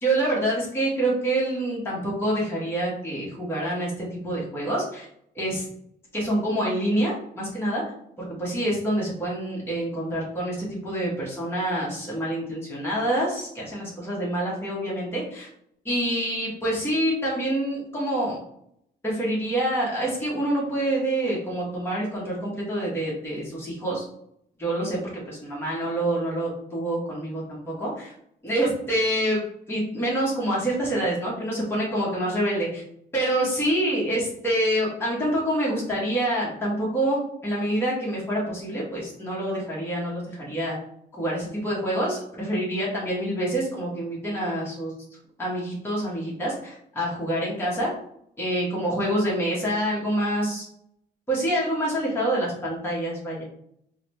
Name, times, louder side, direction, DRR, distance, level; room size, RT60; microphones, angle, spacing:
voice 1, 0.0-5.1 5.3-5.7 6.1-7.8 8.2-15.5 15.8-18.4 19.0-24.0 24.6-25.0 25.3-28.1 28.4-29.4 29.7-32.8 33.1-40.8 41.1-44.9 45.4-47.9 48.4-50.7 51.3-53.4, right 1 dB, 10° left, -6 dB, 1.3 m, -26 dB
3.7 x 2.2 x 3.1 m, 0.72 s
cardioid pair, 90°, 20 cm